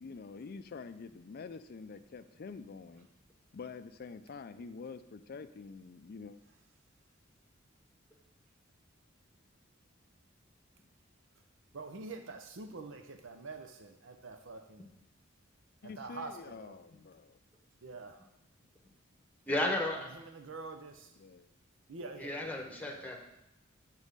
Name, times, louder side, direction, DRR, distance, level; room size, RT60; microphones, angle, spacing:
voice 1, 0.0-3.1 3.5-6.4 15.8-17.4 21.1-21.5, left 4 dB, 50° left, 11 dB, 0.4 m, -47 dB
voice 2, 11.7-14.9 15.8-16.7 17.8-18.2 20.1-21.1 21.9-23.2, right 3 dB, 70° right, 7 dB, 0.7 m, -46 dB
voice 3, 19.5-20.1 22.2-23.2, left 1 dB, 10° left, 2 dB, 1.1 m, -33 dB
7.2 x 4.1 x 6.6 m, 0.84 s
head